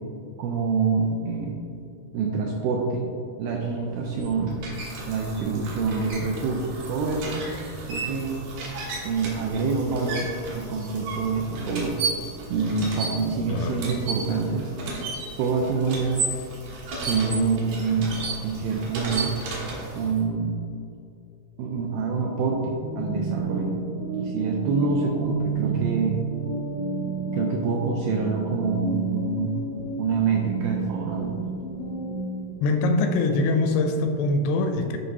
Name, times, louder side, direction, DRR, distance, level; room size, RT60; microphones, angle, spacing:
voice 1, 0.4-1.6 2.1-3.0 3.4-4.6 5.1-7.5 7.9-8.4 9.0-12.0 12.5-14.9 15.4-16.2 17.0-18.2 18.4-19.3 19.9-20.5 21.6-23.8 24.2-26.2 27.3-29.5 30.0-31.4, right 4 dB, 85° right, 0 dB, 2.1 m, -26 dB
sound 1, 3.9-20.2, right 3 dB, 65° right, 2.6 m, -34 dB
voice 2, 13.5-13.8 32.6-35.0, left 2 dB, 85° left, 5 dB, 2.5 m, -23 dB
sound 2, 22.6-32.5, right 4 dB, 65° left, 1.3 m, -31 dB
10.0 x 5.2 x 2.9 m, 2.6 s
omnidirectional pair, 4.7 m